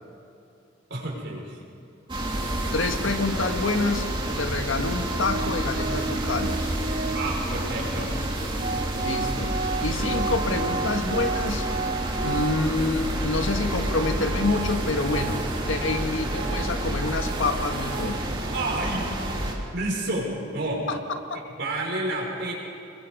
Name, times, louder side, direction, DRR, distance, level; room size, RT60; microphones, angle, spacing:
voice 1, 0.9-1.6 7.1-8.1 18.5-19.3 19.7-20.9 21.3-22.5, right 1 dB, 60° right, -1 dB, 5.7 m, -30 dB
sound 1, 2.1-19.5, right 1 dB, 25° right, 3.0 m, -29 dB
voice 2, 2.7-4.1 4.4-6.7 9.0-9.5 9.8-11.7 12.2-18.4 20.9-21.4, left 3 dB, 80° left, 5 dB, 1.7 m, -27 dB
Organ, 5.2-7.5 8.3-8.4 8.6-13.0 13.3-13.4 13.9-18.3, right 4 dB, 40° right, 0.6 m, -34 dB
29.0 x 22.0 x 5.4 m, 2.8 s
head